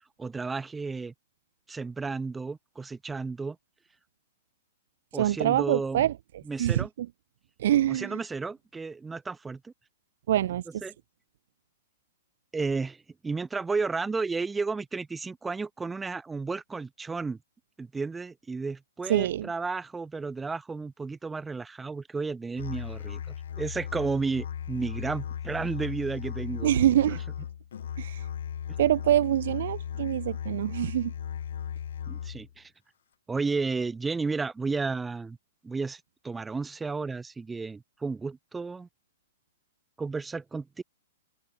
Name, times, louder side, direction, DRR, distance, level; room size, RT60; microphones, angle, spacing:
voice 1, 0.2-1.1 1.7-3.6 5.1-6.1 6.5-6.9 7.9-9.7 10.8-10.9 12.5-17.4 17.8-26.7 32.1-32.7 33.3-35.4 35.6-36.0 36.2-38.9 40.0-40.8, right 4 dB, 10° right, 2.4 m, -32 dB
voice 2, 5.1-6.1 6.6-7.1 7.6-8.2 10.3-10.6 19.1-19.5 26.6-27.2 28.0-28.3 28.8-31.1, right 12 dB, 65° right, 2.2 m, -25 dB
Musical instrument, 22.6-32.5, left 9 dB, 75° left, 3.2 m, -36 dB
hypercardioid pair, 140°, 0 cm